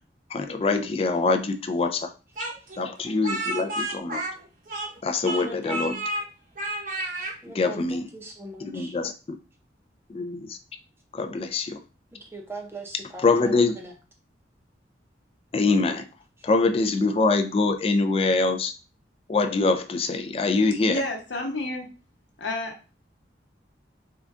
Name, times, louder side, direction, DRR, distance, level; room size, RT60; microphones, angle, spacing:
voice 1, 0.3-2.1 2.8-4.2 5.0-5.9 7.6-8.0 8.6-9.1 10.1-10.6 11.1-11.8 13.2-13.8 15.5-16.1 16.4-18.7 19.3-21.0, left 3 dB, 30° left, 7 dB, 0.4 m, -24 dB
voice 2, 2.4-2.8 5.3-6.0 7.4-9.1 12.1-14.0 16.4-16.5, right 2 dB, 15° right, 1 dB, 0.6 m, -41 dB
Speech, 2.4-5.0 5.2-6.2 6.6-7.3, right 1 dB, 45° right, 0.8 m, -31 dB
voice 3, 20.8-21.9 22.4-23.0, left 2 dB, 80° left, 1 dB, 1.0 m, -31 dB
3.7 x 2.3 x 3.6 m, 0.33 s
head